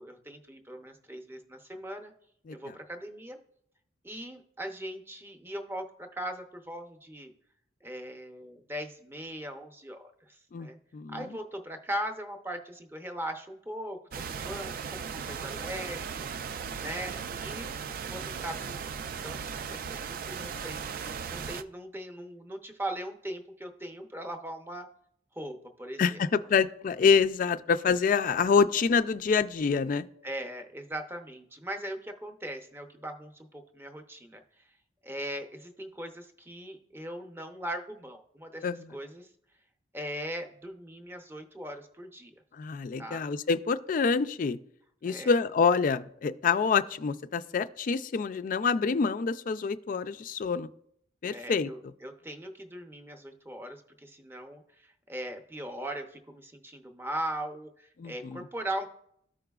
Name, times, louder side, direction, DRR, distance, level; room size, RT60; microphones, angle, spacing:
voice 1, 0.0-2.1 2.5-3.4 4.0-7.3 7.8-10.8 11.1-16.5 16.8-17.7 18.1-18.9 19.2-24.9 25.4-26.2 26.5-26.6 30.2-34.4 35.0-38.6 38.9-39.3 39.9-42.3 43.0-43.2 45.1-45.3 51.3-58.9, right 1 dB, 10° right, 5 dB, 0.6 m, -39 dB
voice 2, 10.5-11.4 26.0-30.0 38.6-38.9 42.5-44.6 45.0-50.7 51.2-51.9 58.0-58.5, left 5 dB, 45° left, 11 dB, 0.3 m, -27 dB
sound 1, 14.1-21.6, right 6 dB, 50° right, 0.3 m, -37 dB
14.0 x 4.8 x 2.3 m, 0.71 s
head